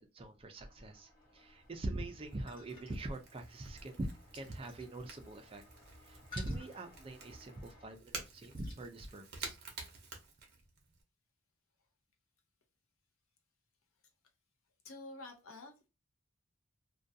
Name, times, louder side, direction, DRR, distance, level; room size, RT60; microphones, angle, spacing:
voice 1, 0.0-4.1 4.3-9.6, right 1 dB, 25° right, 5 dB, 0.3 m, -43 dB
sound 1, 0.5-7.9, left 1 dB, 40° left, 1.2 m, -64 dB
Crackle / Crack, 1.5-11.0, right 4 dB, 50° right, 0.7 m, -51 dB
sound 2, 1.6-8.9, left 1 dB, 20° left, 0.9 m, -57 dB
voice 2, 14.8-15.9, left 2 dB, 75° left, 3 dB, 0.7 m, -49 dB
2.4 x 2.2 x 2.5 m, 0.28 s
head